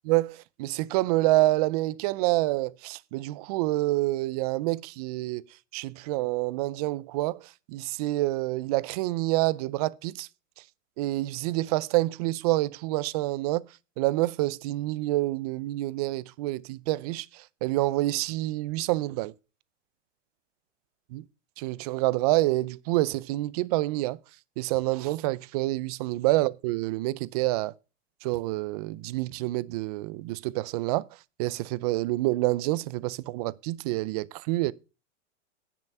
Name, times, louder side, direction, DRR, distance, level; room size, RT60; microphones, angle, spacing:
voice 1, 0.0-5.4 5.7-7.4 7.7-10.3 11.0-13.6 14.0-17.3 17.6-19.3 21.1-21.2 21.6-24.2 24.6-27.7 28.2-31.1 31.4-34.7, right 18 dB, 30° right, 0.5 m, -27 dB
10.0 x 8.8 x 5.5 m
hypercardioid pair, 150°, 38 cm